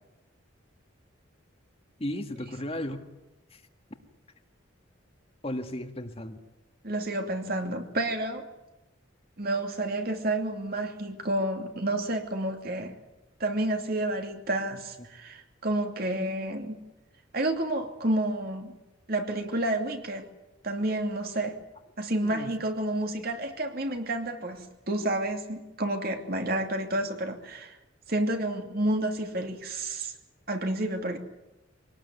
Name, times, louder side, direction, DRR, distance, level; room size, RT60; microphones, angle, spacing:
voice 1, 2.0-3.0 3.5-3.6 5.4-6.4 22.2-22.5, left 1 dB, 30° left, 5 dB, 1.8 m, -35 dB
voice 2, 6.8-8.5 9.4-13.0 13.4-16.8 17.3-18.7 19.1-20.3 20.6-21.6 22.0-27.8 28.1-30.1 30.5-31.2, right 1 dB, 50° right, 4 dB, 2.7 m, -30 dB
24.5 x 19.0 x 9.5 m, 0.97 s
head